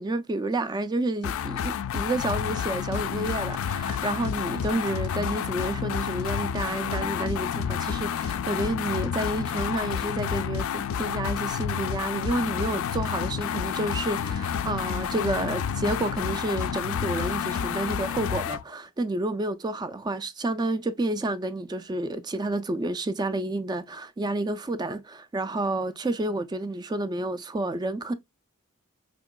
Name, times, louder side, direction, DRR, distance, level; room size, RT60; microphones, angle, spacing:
voice 1, 0.0-28.1, right 2 dB, 20° right, 0.3 m, -30 dB
sound 1, 1.2-18.6, left 8 dB, 65° left, 0.3 m, -29 dB
4.5 x 2.9 x 2.2 m
head